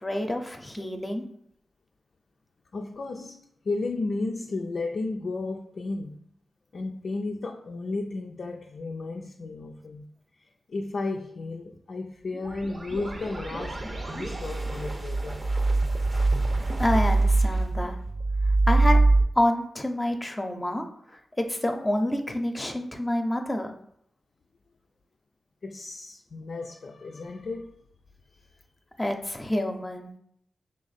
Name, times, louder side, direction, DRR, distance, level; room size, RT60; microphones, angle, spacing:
voice 1, 0.0-1.2 16.8-18.0 18.7-19.0 19.4-20.8 21.5-23.7 29.0-30.1, left 1 dB, 20° left, 4 dB, 0.6 m, -27 dB
voice 2, 2.7-6.2 6.7-10.1 10.4-15.4 25.6-27.7, left 3 dB, 65° left, 1 dB, 0.3 m, -33 dB
sound 1, 12.3-19.2, right 2 dB, 45° right, 0.7 m, -24 dB
3.4 x 2.6 x 4.1 m, 0.68 s
supercardioid pair, 40°, 0 cm